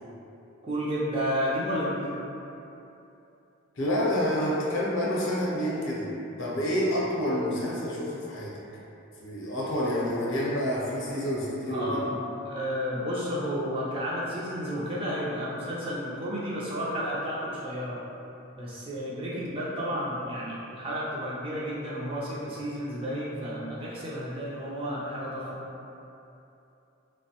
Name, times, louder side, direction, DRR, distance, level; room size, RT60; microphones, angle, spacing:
voice 1, 0.6-2.1 11.7-12.2 12.4-18.0 18.5-25.7, equal, 25° right, -7 dB, 0.3 m, -32 dB
voice 2, 3.7-6.1 6.4-8.6 9.2-12.0, equal, 60° left, -5 dB, 0.6 m, -28 dB
3.0 x 2.1 x 2.8 m, 2.9 s
head